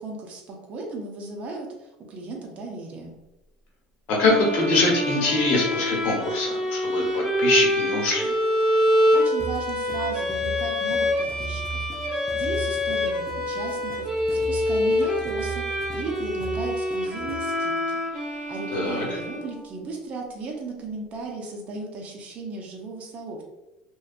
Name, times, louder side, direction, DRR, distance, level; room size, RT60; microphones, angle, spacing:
voice 1, 0.0-3.2 9.1-23.4, right 3 dB, 40° right, 1 dB, 0.6 m, -36 dB
voice 2, 4.1-8.3 18.7-19.2, left 2 dB, 60° left, -2 dB, 0.9 m, -23 dB
sound 1, 4.2-19.9, left 1 dB, 20° right, 1.3 m, -26 dB
sound 2, 9.4-17.6, right 4 dB, 5° left, 0.4 m, -38 dB
2.6 x 2.2 x 2.4 m, 0.95 s
supercardioid pair, 120°, 3 cm